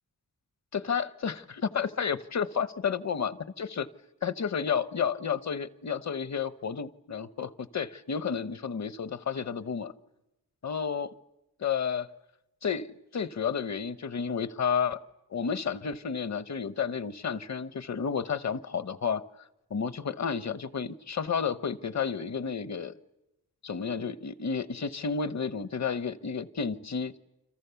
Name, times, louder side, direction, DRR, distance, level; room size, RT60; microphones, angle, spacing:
voice 1, 0.7-3.9 4.2-9.9 10.6-11.1 11.6-12.1 12.6-15.0 15.3-19.2 19.7-22.9 23.6-27.2, left 6 dB, 45° left, 15 dB, 1.0 m, -31 dB
29.0 x 26.0 x 7.0 m, 0.91 s
wide cardioid pair, 180°, 38 cm